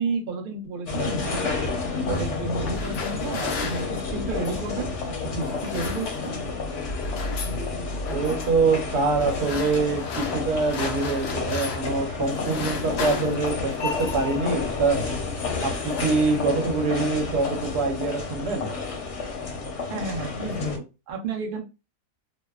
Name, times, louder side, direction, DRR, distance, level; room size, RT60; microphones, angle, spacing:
voice 1, 0.0-1.7 2.1-4.9 5.4-6.4 19.9-21.6, right 4 dB, 65° right, 3 dB, 0.5 m, -32 dB
sound 1, 0.9-20.8, left 4 dB, 60° left, 0.8 m, -30 dB
sound 2, 2.5-4.7 5.4-6.5 6.7-7.6 8.1-8.5 9.2-12.0 12.3-14.4 15.1-15.4 15.7-16.7, left 4 dB, 90° left, 0.5 m, -36 dB
voice 2, 8.1-15.1 15.4-18.7, right 4 dB, 90° right, 4 dB, 1.3 m, -25 dB
2.8 x 2.0 x 2.3 m, 0.28 s
omnidirectional pair, 1.7 m